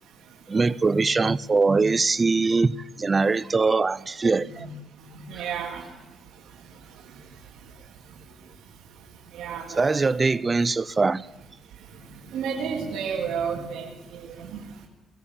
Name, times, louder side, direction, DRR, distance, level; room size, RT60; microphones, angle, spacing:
voice 1, 0.5-4.7 5.4-5.5 9.7-11.3, right 4 dB, 30° right, 0.7 m, -22 dB
voice 2, 5.1-5.8 9.3-9.9 12.3-14.6, right 6 dB, 80° right, 2.8 m, -31 dB
21.0 x 19.0 x 7.3 m
cardioid pair, 90°, 0 cm